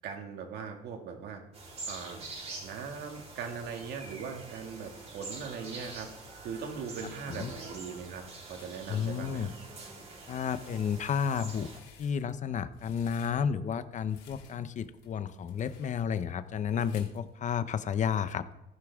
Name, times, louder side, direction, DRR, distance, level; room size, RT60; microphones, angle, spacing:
voice 1, 0.0-1.4 1.9-2.2 2.6-6.1 6.4-8.2 8.5-9.5, right 6 dB, 75° right, 3 dB, 2.2 m, -40 dB
sound 1, 1.5-11.8, right 3 dB, 40° right, 3.8 m, -45 dB
sound 2, 3.1-17.9, left 6 dB, 85° left, 3.7 m, -60 dB
voice 2, 8.9-9.5 10.3-11.7 12.0-18.4, left 7 dB, 45° left, 13 dB, 0.8 m, -32 dB
14.5 x 11.0 x 3.6 m, 0.86 s
cardioid pair, 110°, 17 cm